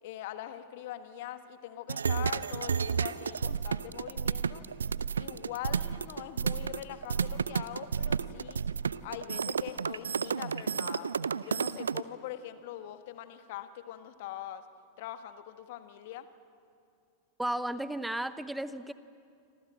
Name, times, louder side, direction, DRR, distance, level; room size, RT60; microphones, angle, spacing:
voice 1, 0.0-4.6 5.2-8.6 9.0-11.1 11.4-14.6 15.0-16.3, left 12 dB, 50° left, 10 dB, 1.5 m, -42 dB
sound 1, 1.9-12.0, right 6 dB, 70° right, 0.5 m, -31 dB
voice 2, 17.4-18.9, right 1 dB, 5° right, 14 dB, 1.0 m, -34 dB
27.5 x 26.0 x 7.7 m, 2.5 s
figure-of-eight pair, 90°, 0 cm